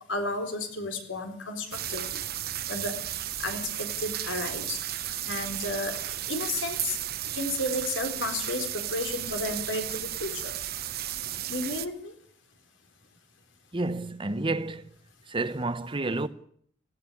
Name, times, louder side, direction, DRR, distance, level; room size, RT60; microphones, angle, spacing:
voice 1, 0.1-2.2 2.7-3.0 3.4-4.8 5.3-6.0 6.3-7.0 7.3-10.5 11.5-12.1, left 2 dB, 85° left, 4.0 m, -32 dB
sound 1, 1.7-11.9, right 12 dB, 55° right, 1.0 m, -34 dB
voice 2, 13.7-15.0 15.3-16.3, right 2 dB, 25° right, 0.8 m, -30 dB
17.5 x 16.0 x 9.8 m
head